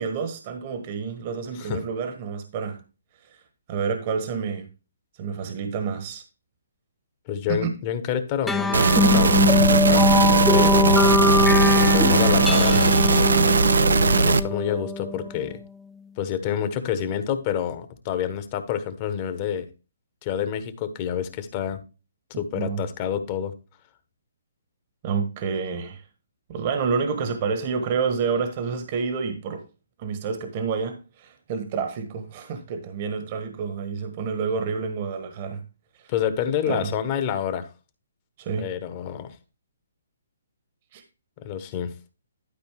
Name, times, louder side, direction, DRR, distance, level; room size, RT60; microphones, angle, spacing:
voice 1, 0.0-2.8 3.7-4.7 5.2-6.2 7.5-7.7 11.9-12.1 22.3-22.8 25.0-26.0 26.5-29.6 30.0-35.6 36.0-36.1 36.7-36.9 38.4-38.7 40.9-41.0, right 5 dB, 35° right, 1.3 m, -29 dB
voice 2, 7.3-10.1 10.5-11.1 11.8-13.0 14.2-15.6 16.2-19.7 20.2-21.8 22.4-23.5 36.1-37.7 38.6-39.4 41.4-41.9, left 9 dB, 30° left, 1.2 m, -28 dB
sound 1, 8.5-15.3, left 3 dB, 5° left, 0.6 m, -22 dB
sound 2, 8.7-14.4, right 4 dB, 65° right, 0.6 m, -19 dB
12.0 x 5.0 x 3.4 m
figure-of-eight pair, 130°, 0 cm